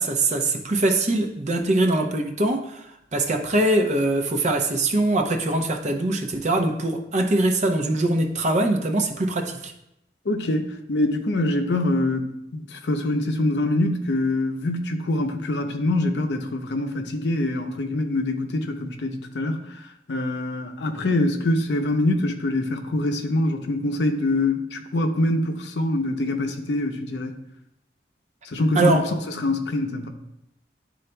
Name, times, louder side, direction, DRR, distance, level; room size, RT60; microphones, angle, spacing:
voice 1, 0.0-2.8 3.1-9.7 28.7-29.0, right 2 dB, 40° right, 4 dB, 0.6 m, -22 dB
voice 2, 10.3-19.6 20.1-27.3 28.4-30.1, left 2 dB, 75° left, 5 dB, 0.7 m, -24 dB
11.0 x 3.9 x 2.2 m, 0.82 s
head